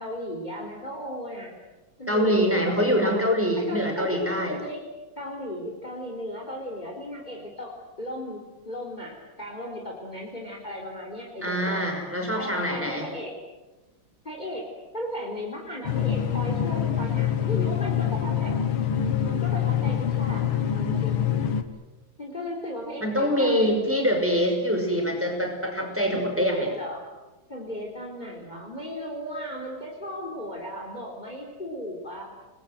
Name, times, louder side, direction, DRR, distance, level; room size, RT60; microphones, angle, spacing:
voice 1, 0.0-1.5 2.0-3.3 3.6-4.8 5.2-11.9 12.3-13.3 14.2-14.7 14.9-18.5 19.2-21.3 22.2-23.8 26.1-27.0 27.5-32.2, equal, 20° left, 0 dB, 4.1 m, -36 dB
voice 2, 2.1-4.6 11.4-13.1 23.0-26.7, equal, 5° right, 2 dB, 5.7 m, -24 dB
sound 1, 15.8-21.6, left 9 dB, 80° left, 2.3 m, -25 dB
29.5 x 21.0 x 7.9 m, 1.1 s
omnidirectional pair, 2.3 m